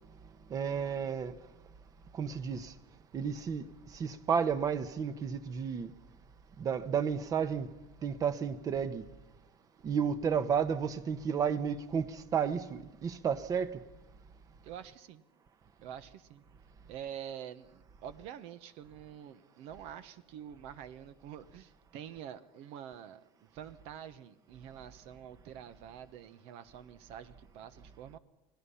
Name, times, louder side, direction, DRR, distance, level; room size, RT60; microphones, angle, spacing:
voice 1, 0.5-1.3 2.1-2.7 3.1-5.9 6.6-7.7 8.0-9.1 9.8-13.8, right 7 dB, 30° right, 1.2 m, -32 dB
voice 2, 14.6-15.2 15.8-16.4 16.9-23.2 23.5-28.2, right 9 dB, 60° right, 1.2 m, -47 dB
29.0 x 19.5 x 5.7 m
supercardioid pair, 135°, 12 cm